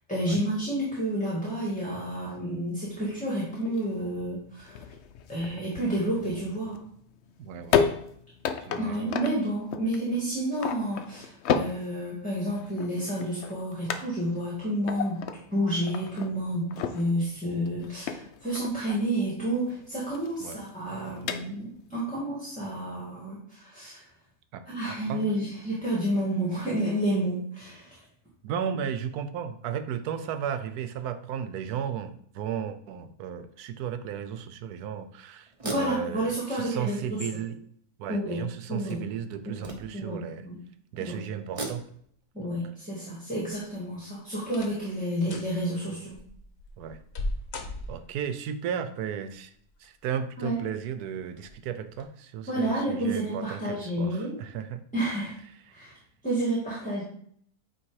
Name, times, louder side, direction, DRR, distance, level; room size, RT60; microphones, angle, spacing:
voice 1, 0.1-4.8 5.3-6.8 8.8-15.2 15.5-24.0 24.6-28.0 35.6-37.4 38.1-38.4 38.7-39.0 39.6-40.6 41.0-41.2 42.3-46.2 50.4-50.6 52.5-54.3 54.9-55.3 55.7-55.9 56.2-57.0, right 1 dB, 5° left, -6 dB, 1.8 m, -30 dB
sound 1, 3.0-21.9, left 7 dB, 70° left, 0.6 m, -34 dB
voice 2, 7.4-8.0 8.6-9.1 20.4-20.6 24.5-25.2 28.4-37.6 38.0-40.5 40.9-41.8 42.4-42.5 46.8-47.0 47.9-49.5 49.8-54.8, right 8 dB, 85° right, 10 dB, 1.1 m, -34 dB
sound 2, 34.3-34.4 35.5-36.8 37.5-37.6 38.7-40.2 41.4-42.2, right 2 dB, 30° right, 0.7 m, -40 dB
sound 3, 43.7-44.0 44.4-44.9 45.2-45.5 46.1-48.3 49.5-50.1 50.5-50.6 51.4-51.6 52.0-52.1, left 1 dB, 50° left, 1.0 m, -37 dB
8.6 x 2.9 x 4.7 m, 0.64 s
omnidirectional pair, 1.6 m